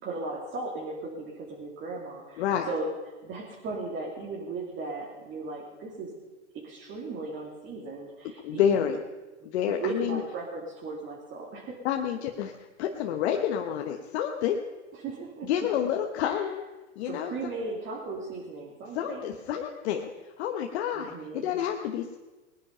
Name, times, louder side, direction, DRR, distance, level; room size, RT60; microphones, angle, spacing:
voice 1, 0.0-2.9 3.2-6.1 6.5-8.9 9.7-11.8 14.9-15.5 16.2-16.4 17.0-19.3 20.9-21.6, right 3 dB, 35° right, -3 dB, 3.2 m, -37 dB
voice 2, 2.4-2.7 8.4-9.0 9.4-10.2 11.8-14.6 15.5-16.6 17.0-17.3 18.9-22.2, left 9 dB, 60° left, 3 dB, 1.3 m, -29 dB
19.5 x 10.0 x 5.6 m, 1.2 s
hypercardioid pair, 120°, 36 cm